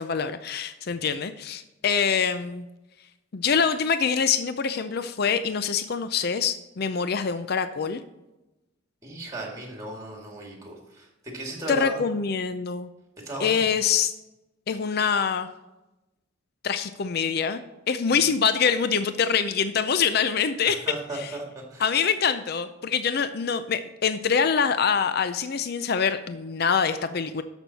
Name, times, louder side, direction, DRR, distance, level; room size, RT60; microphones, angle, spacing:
voice 1, 0.0-2.6 3.3-8.0 11.7-12.9 13.4-14.1 14.7-15.5 16.6-17.6 17.9-21.3 21.8-27.4, left 6 dB, 50° left, 11 dB, 0.5 m, -25 dB
voice 2, 9.0-12.0 13.2-13.7 20.7-21.4 21.7-22.0, right 1 dB, 15° right, 0 dB, 2.2 m, -36 dB
12.5 x 6.2 x 4.1 m, 0.99 s
head